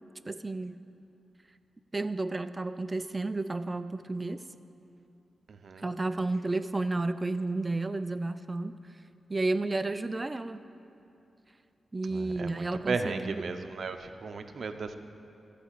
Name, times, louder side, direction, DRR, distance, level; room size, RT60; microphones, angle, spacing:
voice 1, 0.3-0.8 1.9-4.4 5.8-8.8 9.3-10.6 11.9-13.5, right 2 dB, 25° right, 11 dB, 0.4 m, -32 dB
voice 2, 5.5-5.8 12.1-14.9, right 4 dB, 60° right, 7 dB, 0.7 m, -35 dB
14.0 x 5.0 x 8.5 m, 2.8 s
wide cardioid pair, 105°, 0 cm